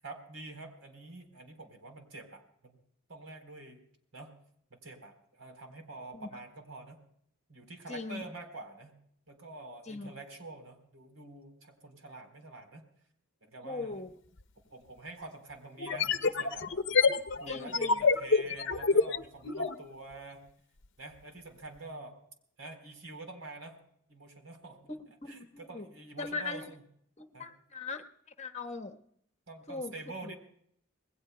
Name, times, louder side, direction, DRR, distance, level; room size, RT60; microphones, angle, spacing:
voice 1, 0.0-2.8 3.1-3.8 4.1-4.3 4.7-7.0 7.5-9.0 9.3-12.8 13.4-14.0 14.7-20.4 21.0-22.2 22.6-23.8 24.1-24.9 25.3-26.8 27.3-27.5 29.5-30.3, right 2 dB, 80° right, 4 dB, 3.9 m, -47 dB
voice 2, 7.9-8.2 9.9-10.1 13.6-14.1 17.5-18.0 25.2-25.5 25.7-25.9 26.2-26.6 27.2-28.1 28.4-29.0 29.7-29.9 30.2-30.3, left 3 dB, 30° left, 6 dB, 1.2 m, -39 dB
sound 1, 14.4-14.5 15.8-19.8, left 4 dB, 60° left, 0.8 m, -27 dB
27.0 x 20.0 x 2.3 m, 0.68 s
head